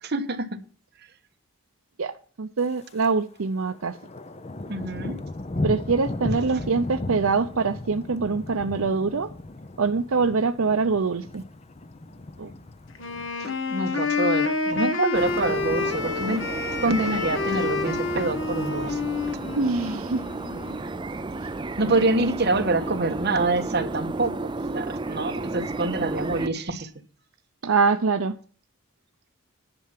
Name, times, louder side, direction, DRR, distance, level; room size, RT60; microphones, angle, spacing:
voice 1, 0.0-0.6 4.6-5.2 13.4-16.4 16.8-19.0 21.8-26.9, right 2 dB, 50° right, 5 dB, 1.4 m, -26 dB
voice 2, 2.4-4.0 5.6-9.3 9.8-11.4 12.4-12.5 19.6-20.2 27.6-28.4, right 4 dB, 70° right, 8 dB, 0.6 m, -24 dB
Thunder, 2.6-3.1 3.4-13.8 14.1-14.5 14.9-15.4 15.7-15.8 15.9-16.0 16.4-17.0 17.7-18.7, left 2 dB, 30° left, 0.6 m, -36 dB
Wind instrument woodwind instrument, 13.0-20.8, left 4 dB, 55° left, 1.4 m, -28 dB
sound 1, 15.1-26.5, right 2 dB, 20° right, 0.5 m, -33 dB
10.5 x 5.8 x 7.5 m, 0.43 s
head